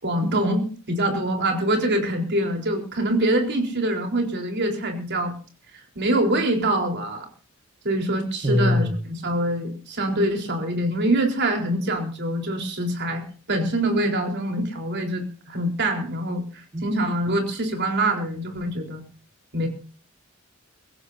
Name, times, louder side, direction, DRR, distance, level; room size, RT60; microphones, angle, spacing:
voice 1, 0.0-5.3 6.0-7.3 7.8-19.0 19.5-19.7, right 1 dB, 55° right, 3 dB, 4.1 m, -24 dB
voice 2, 8.4-8.9 16.7-16.8, left 1 dB, 30° right, 3 dB, 1.7 m, -21 dB
23.0 x 16.5 x 2.7 m, 0.38 s
head